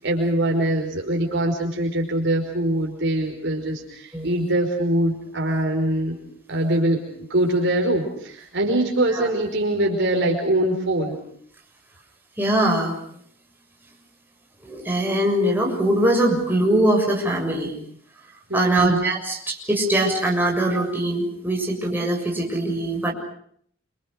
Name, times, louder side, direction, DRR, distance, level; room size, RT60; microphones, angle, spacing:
voice 1, 0.0-6.2 6.5-7.0 7.3-11.2 18.5-19.0, right 1 dB, 65° right, 1 dB, 5.3 m, -23 dB
voice 2, 12.4-13.0 14.6-17.7 18.5-23.1, right 1 dB, 10° right, 0 dB, 7.0 m, -22 dB
28.5 x 26.5 x 6.5 m, 0.64 s
head